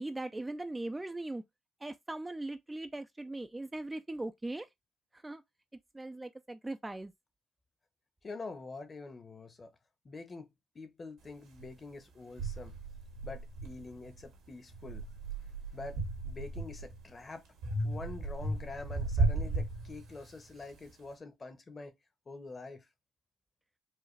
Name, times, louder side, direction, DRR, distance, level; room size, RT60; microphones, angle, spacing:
voice 1, 0.0-1.4 1.8-4.7 5.2-5.4 5.9-7.1, right 2 dB, 15° right, 0.4 m, -39 dB
voice 2, 8.2-9.7 10.0-12.7 13.2-15.0 15.7-16.0 16.2-17.4 17.8-22.0 22.3-22.8, left 3 dB, 35° left, 1.0 m, -46 dB
sound 1, 11.6-11.7 12.4-14.2 14.7-17.0 17.6-20.4, right 2 dB, 85° right, 1.6 m, -35 dB
4.6 x 2.5 x 3.2 m
cardioid pair, 90°, 0 cm